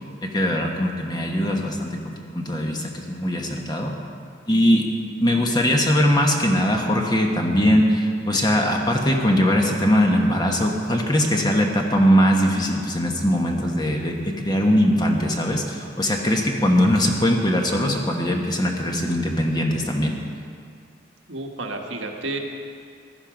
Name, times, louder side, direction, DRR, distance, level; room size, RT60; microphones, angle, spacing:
voice 1, 0.2-4.0 4.5-4.9 5.2-20.1, equal, 20° left, 1 dB, 1.2 m, -21 dB
voice 2, 21.3-22.4, right 2 dB, 85° right, 2 dB, 1.5 m, -31 dB
15.5 x 12.0 x 5.1 m, 2.3 s
head